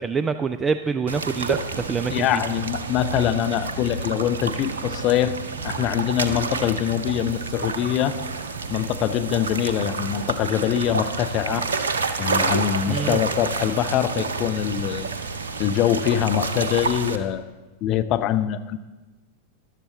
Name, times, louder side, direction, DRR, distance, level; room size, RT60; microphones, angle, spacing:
voice 1, 0.0-2.4 12.9-13.2, right 5 dB, 15° right, 11 dB, 0.4 m, -26 dB
sound 1, 1.1-17.2, right 4 dB, 70° right, 0.7 m, -29 dB
voice 2, 2.1-5.3 5.6-8.2 8.7-11.7 12.2-15.1 15.6-17.5 17.8-18.8, left 11 dB, 40° left, 10 dB, 0.6 m, -23 dB
14.0 x 11.5 x 3.9 m, 1.2 s
figure-of-eight pair, 90°, 0 cm